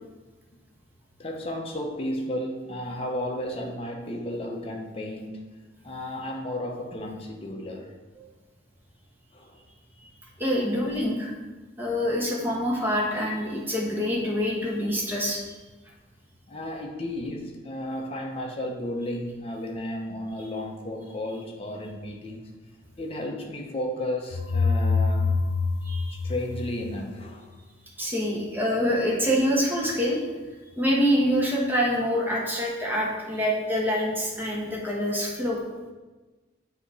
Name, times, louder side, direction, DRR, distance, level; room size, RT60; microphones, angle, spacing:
voice 1, 1.2-5.4 5.8-7.9 9.3-9.6 16.5-22.5 23.0-25.5 26.1-27.5, left 1 dB, 30° left, 1 dB, 0.8 m, -33 dB
voice 2, 10.4-11.3 11.8-15.6 25.8-26.2 28.0-30.2 30.8-35.6, equal, 10° right, -3 dB, 1.1 m, -26 dB
sound 1, 24.3-27.2, left 4 dB, 60° left, 0.4 m, -25 dB
7.8 x 2.9 x 4.8 m, 1.2 s
head